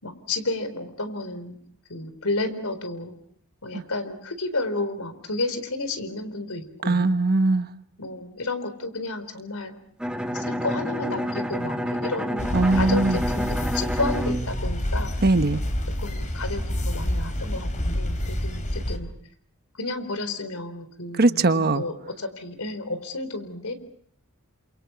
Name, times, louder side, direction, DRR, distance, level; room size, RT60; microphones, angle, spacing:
voice 1, 0.0-1.6 1.9-3.1 3.6-7.2 8.0-9.7 10.3-15.1 16.0-19.1 19.8-23.7, left 2 dB, 75° left, 4.3 m, -31 dB
voice 2, 6.8-7.7 12.5-13.2 15.2-15.6 21.2-21.8, right 2 dB, 45° right, 1.2 m, -20 dB
Bowed string instrument, 10.0-15.7, equal, 5° right, 1.5 m, -29 dB
sound 1, 12.4-19.0, left 1 dB, 35° left, 3.9 m, -28 dB
29.5 x 27.5 x 5.8 m
head